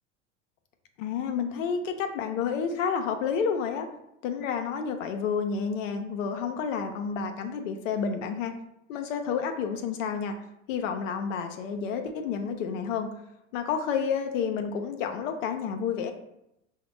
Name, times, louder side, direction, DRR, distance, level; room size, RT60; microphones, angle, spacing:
voice 1, 1.0-3.9 4.2-8.5 8.9-10.4 10.7-13.1 13.5-16.1, left 6 dB, 80° left, 6 dB, 0.5 m, -30 dB
4.9 x 2.1 x 3.0 m, 0.82 s
hypercardioid pair, 85°, 38 cm